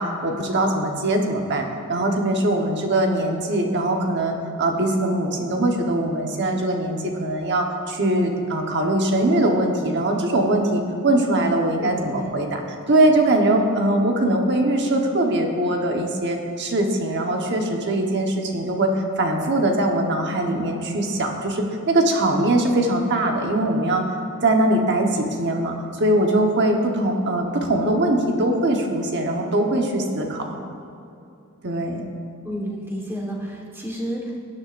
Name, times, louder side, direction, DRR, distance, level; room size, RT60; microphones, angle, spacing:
voice 1, 0.0-12.6 12.9-24.0 24.4-30.5 31.6-32.0, right 1 dB, 55° right, 2 dB, 1.2 m, -21 dB
voice 2, 11.8-12.3 27.4-27.5 32.4-34.4, equal, 10° right, -2 dB, 1.4 m, -31 dB
17.5 x 9.8 x 2.6 m, 2.7 s
head